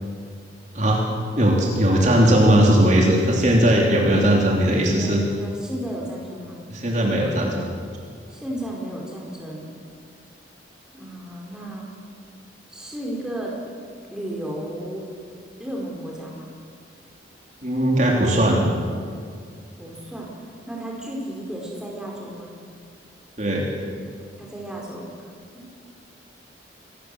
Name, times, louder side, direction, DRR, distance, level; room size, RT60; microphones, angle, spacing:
voice 1, 0.7-1.0 1.4-5.2 6.7-7.5 17.6-18.6 23.4-23.7, right 1 dB, 40° right, -1 dB, 3.2 m, -18 dB
voice 2, 5.0-6.6 8.3-9.7 10.9-11.9 12.7-13.6 14.1-15.1 15.6-16.5 19.8-20.3 20.7-22.5 24.4-25.1 25.5-25.7, right 1 dB, 5° right, -2 dB, 4.3 m, -33 dB
25.0 x 18.0 x 7.7 m, 2.1 s
head